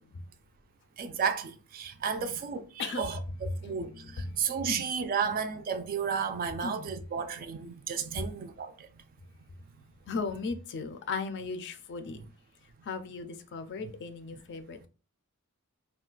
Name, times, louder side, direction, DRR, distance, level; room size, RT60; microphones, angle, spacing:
voice 1, 1.0-8.9 12.2-12.3 13.8-13.9, right 6 dB, 40° right, 0.3 m, -33 dB
voice 2, 2.8-3.1 4.2-4.8 6.6-6.9 10.1-12.2 12.9-14.9, left 4 dB, 55° left, 0.4 m, -37 dB
2.4 x 2.3 x 3.7 m
head